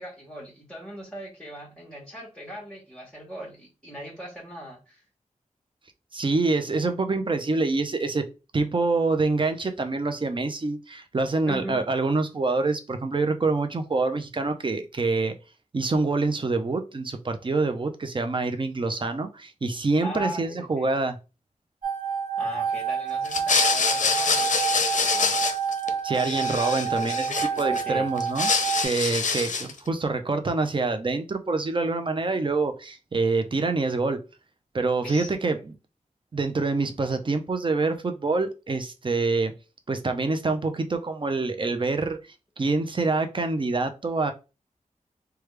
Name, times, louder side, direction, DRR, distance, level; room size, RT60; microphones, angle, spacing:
voice 1, 0.0-5.0 11.5-11.9 20.0-20.9 22.4-24.5 24.9-25.4 27.5-28.1 35.0-35.3, equal, 5° left, 1.2 m, -38 dB
voice 2, 6.1-8.3 8.5-15.3 15.7-21.2 26.0-28.5 28.8-34.2 34.7-35.6 36.3-39.5 39.9-42.2 42.6-44.3, right 3 dB, 40° right, 0.5 m, -26 dB
sound 1, 21.8-28.9, right 7 dB, 85° right, 1.2 m, -28 dB
sound 2, 23.3-25.9 26.1-27.8 28.2-29.8, left 5 dB, 65° left, 0.5 m, -25 dB
3.2 x 2.3 x 3.2 m
wide cardioid pair, 65°, 13 cm